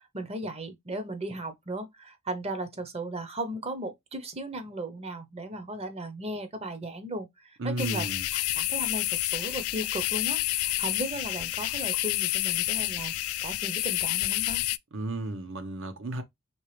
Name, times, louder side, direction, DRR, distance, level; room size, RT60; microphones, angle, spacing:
voice 1, 0.0-8.0 8.3-13.1 13.4-14.6, right 1 dB, 30° right, 0.8 m, -36 dB
voice 2, 7.6-8.2 14.9-16.2, right 2 dB, 60° right, 0.9 m, -33 dB
sound 1, 7.8-14.8, left 18 dB, 80° left, 0.3 m, -29 dB
4.5 x 3.4 x 3.2 m
head